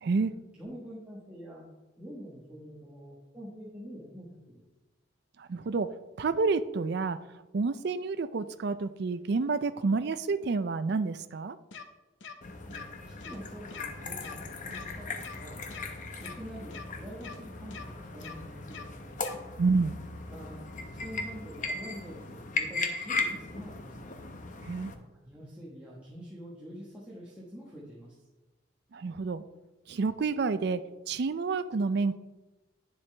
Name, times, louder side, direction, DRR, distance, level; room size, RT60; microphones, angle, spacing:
voice 1, 0.0-0.3 5.4-5.9 6.2-7.2 7.5-11.6 19.6-20.0 24.6-24.9 28.9-29.4 29.9-30.8 31.1-32.2, right 4 dB, 60° right, 12 dB, 0.4 m, -29 dB
voice 2, 0.6-1.6 2.0-4.6 12.3-19.5 20.3-24.1 25.2-28.1, equal, 5° right, -8 dB, 1.3 m, -46 dB
sound 1, 11.7-11.8 12.2-12.3 12.7-12.8 13.2-13.4 13.7-13.8 14.2-14.3 14.7-14.8 15.2-15.4 15.7-15.8 16.2-16.3 16.7-16.8 17.2-17.4 17.7-17.8 18.2-18.3 18.7-18.8 19.2-19.4, left 6 dB, 80° left, 0.8 m, -43 dB
sound 2, 12.4-24.9, left 3 dB, 45° left, 0.8 m, -38 dB
9.7 x 6.9 x 3.3 m, 1.1 s
head